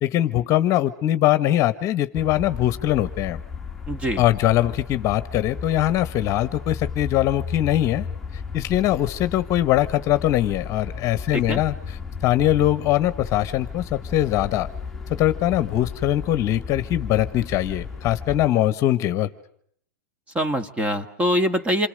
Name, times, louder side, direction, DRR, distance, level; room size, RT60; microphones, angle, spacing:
voice 1, 0.0-3.4 4.2-8.1 8.5-12.0 12.2-14.7 15.1-19.3, left 13 dB, 35° left, 13 dB, 1.3 m, -22 dB
sound 1, 2.1-18.5, left 5 dB, ahead, 1.8 m, -34 dB
voice 2, 3.9-4.2 11.3-11.6 20.4-21.9, equal, 15° right, 10 dB, 1.9 m, -23 dB
28.0 x 25.0 x 6.6 m, 0.65 s
hypercardioid pair, 135°, 10 cm